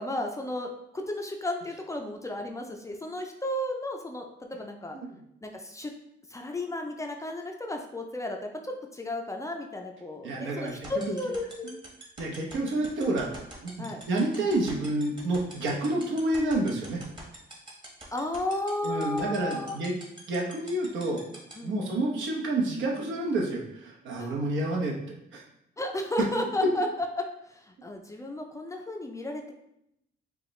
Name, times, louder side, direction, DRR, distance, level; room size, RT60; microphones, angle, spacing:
voice 1, 0.0-5.0 5.4-5.9 6.3-11.8 13.8-14.0 18.1-19.8 21.6-21.8 24.2-24.3 25.8-26.9 27.2-29.5, left 1 dB, 15° left, 3 dB, 0.4 m, -33 dB
voice 2, 10.2-10.8 11.6-11.7 12.2-13.3 13.6-17.0 18.8-19.9 20.3-21.2 21.6-24.9 25.3-25.4, right 2 dB, 75° right, -1 dB, 1.0 m, -29 dB
sound 1, 10.7-21.5, right 1 dB, 25° right, 1.2 m, -44 dB
4.6 x 2.3 x 3.1 m, 0.78 s
cardioid pair, 90°, 20 cm